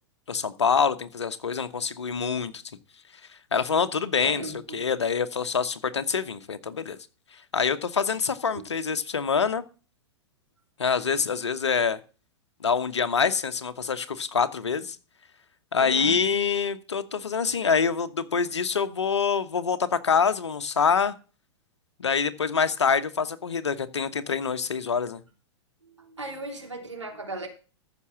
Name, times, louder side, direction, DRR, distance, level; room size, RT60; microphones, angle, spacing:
voice 1, 0.3-2.6 3.5-4.4 4.7-7.0 7.3-9.6 10.8-12.0 12.6-15.0 15.7-21.1 22.0-25.2, left 6 dB, 75° left, 1.1 m, -25 dB
voice 2, 4.2-4.6 8.0-8.2 8.4-8.6 15.8-16.2 25.8-27.5, right 2 dB, 85° right, 3.1 m, -37 dB
14.0 x 6.1 x 5.9 m
figure-of-eight pair, 100°, 15 cm